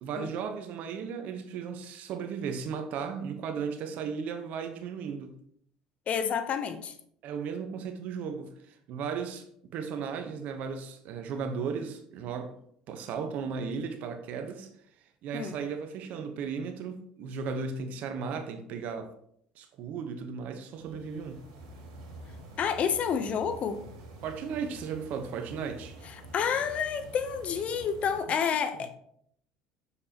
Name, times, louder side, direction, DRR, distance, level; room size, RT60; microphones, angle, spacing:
voice 1, 0.0-5.4 7.2-9.4 9.7-12.5 12.9-14.7 15.2-19.1 19.6-21.4 24.2-26.0 28.3-28.4 28.7-28.8, right 6 dB, 65° right, 7 dB, 1.0 m, -35 dB
voice 2, 6.1-6.9 15.3-15.6 22.6-23.8 26.3-28.9, left 7 dB, 50° left, 10 dB, 0.8 m, -29 dB
sound 1, 20.7-28.2, right 1 dB, 80° right, 2.4 m, -48 dB
7.0 x 6.4 x 2.9 m, 0.69 s
supercardioid pair, 80°, 3 cm